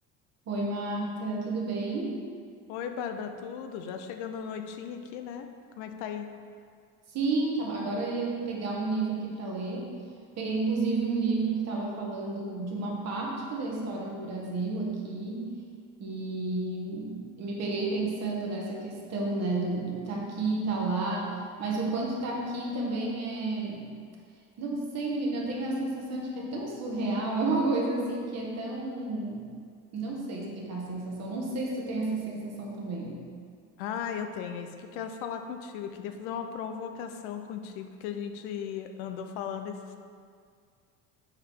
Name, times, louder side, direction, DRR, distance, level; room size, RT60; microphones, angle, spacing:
voice 1, 0.5-2.2 7.1-9.9 10.4-15.4 16.0-23.9 24.6-29.4 29.9-33.2, right 3 dB, 50° right, -2 dB, 1.5 m, -31 dB
voice 2, 2.7-5.5 5.8-6.3 33.8-40.0, left 7 dB, 85° left, 6 dB, 0.6 m, -36 dB
6.6 x 4.7 x 3.6 m, 2.1 s
supercardioid pair, 105°, 35 cm